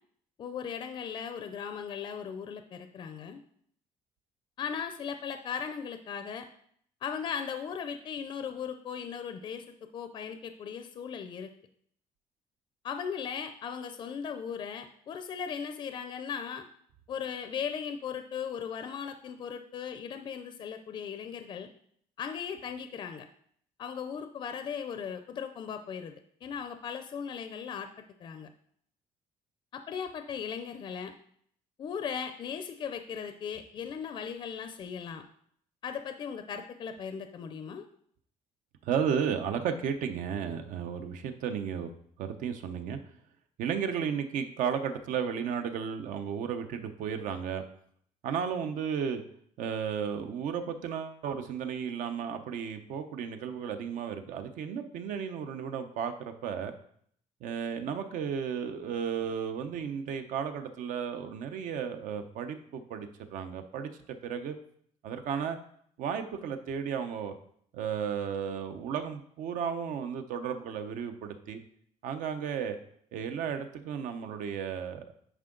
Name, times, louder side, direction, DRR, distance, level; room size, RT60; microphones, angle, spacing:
voice 1, 0.4-3.4 4.6-6.5 7.0-9.7 9.9-11.5 12.8-16.6 17.1-21.7 22.2-23.3 23.8-26.1 26.4-27.9 28.2-28.5 29.7-31.1 31.8-35.2 35.8-37.9, left 7 dB, 35° left, 8 dB, 0.5 m, -37 dB
voice 2, 38.8-41.9 42.2-43.0 43.6-47.6 48.2-49.2 49.6-56.7 57.4-64.5 65.0-65.6 66.0-67.3 67.7-71.6 72.0-72.8 73.1-75.1, right 7 dB, 75° right, 8 dB, 0.8 m, -34 dB
9.8 x 4.6 x 3.8 m, 0.64 s
cardioid pair, 170°, 14 cm